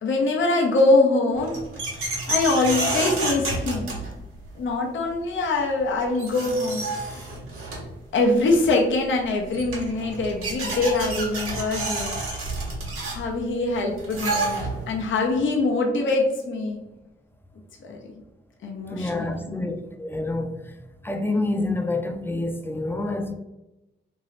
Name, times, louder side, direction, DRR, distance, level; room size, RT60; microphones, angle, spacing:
voice 1, 0.0-1.5 2.0-3.9 4.5-7.2 8.1-12.2 13.1-16.8 17.9-18.0 18.6-19.6, left 2 dB, 65° left, 0.6 m, -23 dB
sound 1, 1.3-4.5 5.8-5.9 6.1-8.0 9.2-9.3 9.5-15.0, right 2 dB, 85° right, 0.9 m, -29 dB
voice 2, 18.9-20.6 21.0-23.3, left 2 dB, 10° left, 0.5 m, -27 dB
2.7 x 2.7 x 3.1 m
cardioid pair, 60°, 21 cm